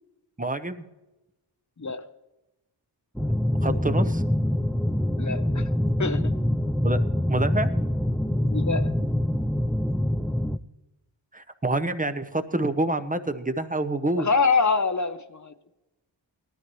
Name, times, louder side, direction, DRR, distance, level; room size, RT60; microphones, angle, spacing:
voice 1, 0.4-0.9 3.6-4.2 6.8-7.0 7.3-7.7 9.0-9.1 11.3-14.3, right 2 dB, 15° right, 9 dB, 0.8 m, -27 dB
sound 1, 3.2-10.6, left 1 dB, ahead, 0.3 m, -25 dB
voice 2, 5.2-5.7 6.0-6.3 8.5-9.0 14.2-15.5, left 4 dB, 40° left, 10 dB, 0.8 m, -25 dB
19.0 x 13.0 x 3.1 m, 1.0 s
wide cardioid pair, 70°, 47 cm